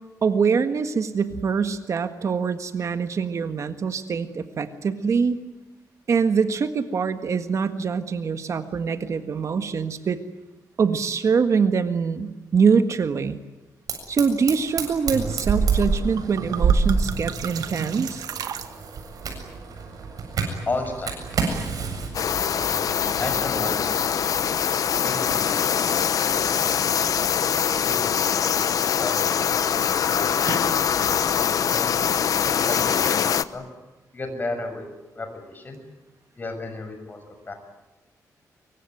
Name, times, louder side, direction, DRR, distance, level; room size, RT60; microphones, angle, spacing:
voice 1, 0.2-5.4 6.1-10.2 10.8-13.4 14.1-18.2, right 5 dB, 50° right, 8 dB, 1.6 m, -24 dB
Fire, 13.9-31.2, right 4 dB, 70° right, 7.5 m, -30 dB
sound 1, 15.8-19.2, right 7 dB, 90° right, 2.0 m, -34 dB
voice 2, 20.7-21.2 23.2-24.3 25.0-27.3 27.8-28.4 28.8-29.4 29.7-31.9 32.6-33.7 34.1-34.9 35.1-35.8 36.4-37.5, left 2 dB, 30° left, 6 dB, 6.7 m, -34 dB
sound 2, 22.1-33.4, left 8 dB, 65° left, 0.9 m, -23 dB
25.5 x 24.0 x 9.4 m, 1.1 s
wide cardioid pair, 130°, 6 cm